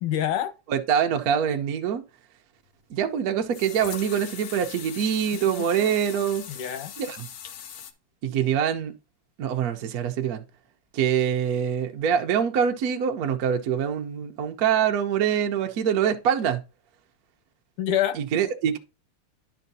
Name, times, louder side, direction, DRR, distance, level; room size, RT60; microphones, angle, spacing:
voice 1, 0.0-0.5 6.5-6.9 17.8-18.2, left 11 dB, 80° left, 1.5 m, -26 dB
voice 2, 0.7-2.0 2.9-6.4 7.0-7.3 8.2-8.9 9.4-10.4 10.9-16.6 18.1-18.8, right 8 dB, 70° right, 0.9 m, -24 dB
sound 1, 2.7-2.8 3.5-7.9, left 8 dB, 65° left, 1.1 m, -40 dB
10.5 x 5.6 x 2.7 m
omnidirectional pair, 2.4 m